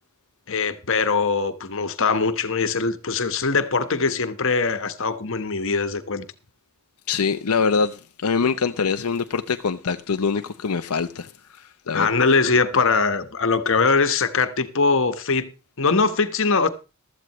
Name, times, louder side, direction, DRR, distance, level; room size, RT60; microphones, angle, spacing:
voice 1, 0.5-6.3 11.9-15.5 15.8-16.7, left 4 dB, 60° left, 1.2 m, -22 dB
voice 2, 7.1-12.2, left 5 dB, 90° left, 0.7 m, -24 dB
15.5 x 13.0 x 3.1 m
head